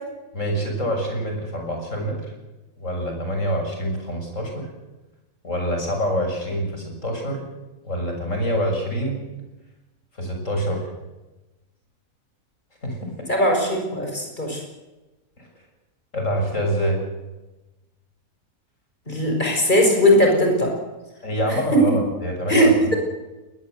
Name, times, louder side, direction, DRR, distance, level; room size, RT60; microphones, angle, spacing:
voice 1, 0.3-2.2 2.8-4.7 5.4-7.4 7.9-9.2 10.2-10.8 12.8-13.3 16.1-17.0 21.2-22.7, equal, 50° left, 2 dB, 7.1 m, -26 dB
voice 2, 13.3-14.6 19.1-20.7 21.7-21.8 22.5-23.0, equal, 30° left, 2 dB, 6.4 m, -18 dB
20.5 x 20.5 x 8.1 m, 1.1 s
omnidirectional pair, 1.7 m